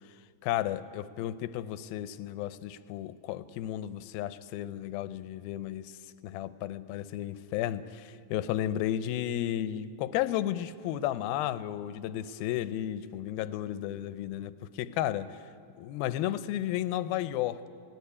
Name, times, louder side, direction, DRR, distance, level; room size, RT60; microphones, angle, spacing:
voice 1, 0.4-6.0 6.2-15.4 15.8-17.7, left 12 dB, 80° left, 14 dB, 2.4 m, -33 dB
19.0 x 18.0 x 9.7 m, 2.3 s
omnidirectional pair, 4.5 m